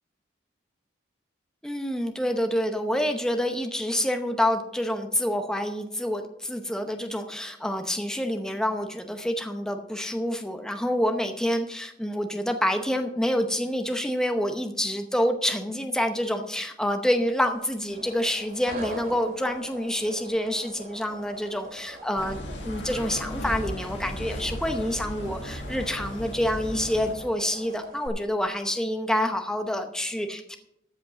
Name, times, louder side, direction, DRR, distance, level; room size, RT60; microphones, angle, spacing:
voice 1, 1.6-30.6, equal, 5° left, 5 dB, 0.7 m, -27 dB
sound 1, 17.3-28.1, right 2 dB, 50° right, 2.3 m, -44 dB
sound 2, 22.2-27.1, left 1 dB, 90° left, 2.0 m, -35 dB
13.5 x 5.1 x 7.4 m, 0.80 s
head